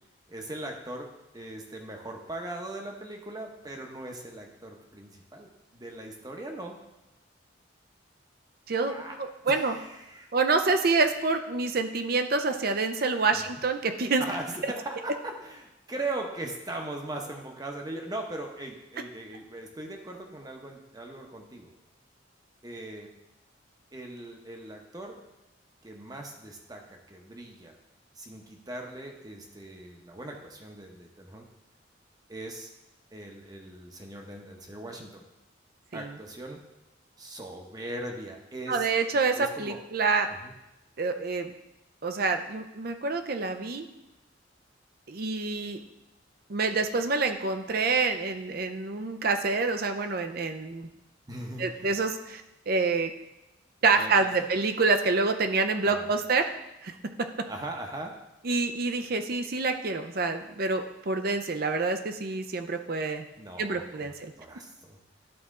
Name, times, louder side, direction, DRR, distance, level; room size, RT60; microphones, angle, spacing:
voice 1, 0.3-6.8 8.9-9.2 9.4-10.3 13.3-13.6 14.2-21.7 22.6-23.1 23.9-25.2 25.8-27.8 28.1-31.5 32.3-32.7 33.1-35.3 35.9-36.6 37.2-38.9 39.3-39.8 40.3-40.5 51.3-51.9 54.0-54.5 55.9-56.1 57.5-58.2 63.4-65.0, right 2 dB, 20° right, 2 dB, 0.8 m, -39 dB
voice 2, 8.7-9.8 10.3-14.2 35.9-36.2 38.7-40.3 41.0-41.5 42.0-43.9 45.1-45.8 46.5-50.9 51.6-53.1 53.8-56.5 56.8-56.9 58.4-63.2 63.6-64.3, right 4 dB, 50° right, 7 dB, 0.5 m, -27 dB
11.0 x 4.2 x 3.7 m, 0.94 s
head